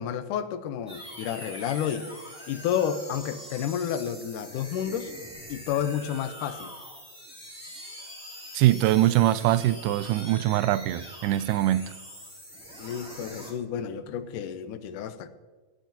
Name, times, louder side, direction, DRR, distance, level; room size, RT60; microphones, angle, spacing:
voice 1, 0.0-2.1 2.5-5.1 5.5-6.7 12.8-15.3, left 9 dB, 85° left, 2.3 m, -30 dB
sound 1, 0.9-13.5, equal, ahead, 2.3 m, -43 dB
voice 2, 8.5-11.9, right 14 dB, 90° right, 2.1 m, -23 dB
19.0 x 13.0 x 2.9 m
omnidirectional pair, 3.6 m